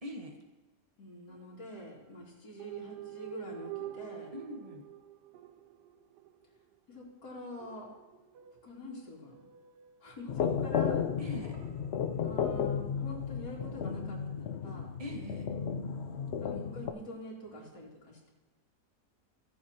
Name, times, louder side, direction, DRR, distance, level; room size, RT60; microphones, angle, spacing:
voice 1, 0.0-0.4 4.3-4.9 11.2-11.6 15.0-15.5, equal, 25° right, 2 dB, 1.2 m, -42 dB
voice 2, 1.0-4.3 6.9-7.9 8.6-9.5 10.0-11.0 12.2-14.9 16.4-18.3, left 1 dB, 70° left, -5 dB, 3.1 m, -45 dB
sound 1, 1.3-2.0 2.6-7.1 7.6-10.9 11.5-14.1 15.5-17.7, right 13 dB, 80° right, 1.3 m, -50 dB
sound 2, 10.3-16.9, left 7 dB, 90° left, 0.5 m, -33 dB
17.0 x 7.2 x 2.9 m, 1.2 s
omnidirectional pair, 1.8 m